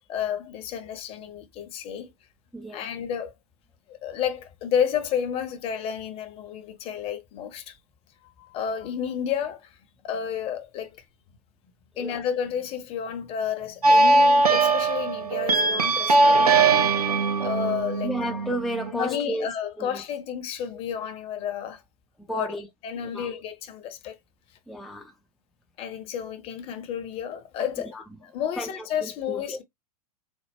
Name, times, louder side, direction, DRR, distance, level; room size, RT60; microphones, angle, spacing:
voice 1, 0.1-2.1 2.7-3.3 3.9-7.8 8.2-9.8 10.0-11.0 12.0-16.5 17.4-18.1 18.9-21.8 22.3-22.5 22.8-24.2 25.8-29.6, left 8 dB, 30° left, 0.8 m, -31 dB
voice 2, 2.5-2.9 12.0-12.2 18.0-19.5 19.8-19.9 22.3-22.6 23.0-23.3 24.7-25.1 27.9-28.0 28.6-29.6, right 1 dB, ahead, 0.5 m, -32 dB
sound 1, 13.8-18.9, right 3 dB, 75° right, 0.7 m, -20 dB
4.1 x 2.3 x 3.5 m
figure-of-eight pair, 95°, 20 cm